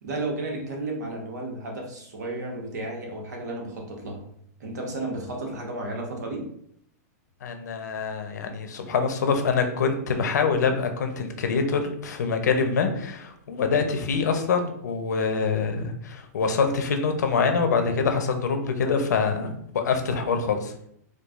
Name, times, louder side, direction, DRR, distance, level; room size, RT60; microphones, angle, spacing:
voice 1, 0.0-4.2 4.6-6.5, right 2 dB, 85° right, 1 dB, 1.1 m, -33 dB
voice 2, 7.4-20.9, left 5 dB, 85° left, 6 dB, 0.7 m, -25 dB
4.7 x 2.3 x 2.4 m, 0.70 s
hypercardioid pair, 135°, 9 cm